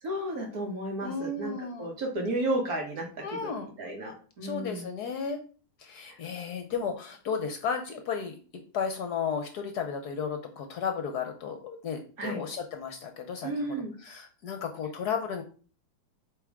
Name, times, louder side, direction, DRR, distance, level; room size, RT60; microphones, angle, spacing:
voice 1, 0.0-3.5 3.8-4.9 6.1-6.2 12.2-12.4 13.4-13.9, right 1 dB, 50° right, 1 dB, 1.9 m, -33 dB
voice 2, 1.0-1.9 3.2-3.7 4.4-5.4 5.8-8.4 8.7-13.5 14.0-15.4, left 6 dB, 65° left, 6 dB, 1.2 m, -33 dB
8.0 x 3.7 x 3.6 m, 0.39 s
omnidirectional pair, 2.1 m